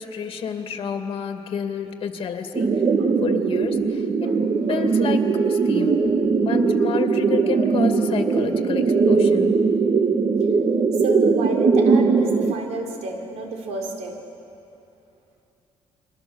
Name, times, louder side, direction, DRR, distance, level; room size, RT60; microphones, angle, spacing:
voice 1, 0.0-2.8 3.2-4.3 4.6-6.0 6.4-9.6, left 6 dB, 55° left, 5 dB, 2.4 m, -30 dB
sound 1, 2.5-12.5, right 4 dB, 45° right, 1.3 m, -20 dB
voice 2, 11.0-14.1, right 3 dB, 80° right, 2 dB, 3.9 m, -30 dB
29.5 x 23.0 x 7.3 m, 2.8 s
cardioid pair, 95°, 11 cm